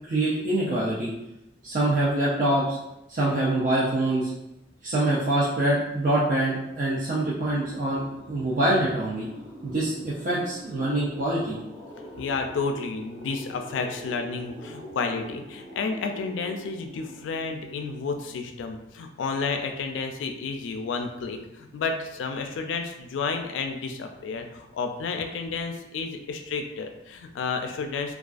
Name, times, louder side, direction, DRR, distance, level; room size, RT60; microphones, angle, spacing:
voice 1, 0.1-1.1 1.6-2.8 3.1-4.3 4.8-9.3 9.6-11.6, right 1 dB, 45° right, -7 dB, 0.4 m, -25 dB
sound 1, 7.2-18.4, equal, 5° left, 0.8 m, -45 dB
voice 2, 11.8-28.1, left 4 dB, 75° left, 5 dB, 0.3 m, -31 dB
2.3 x 2.3 x 2.4 m, 0.89 s
head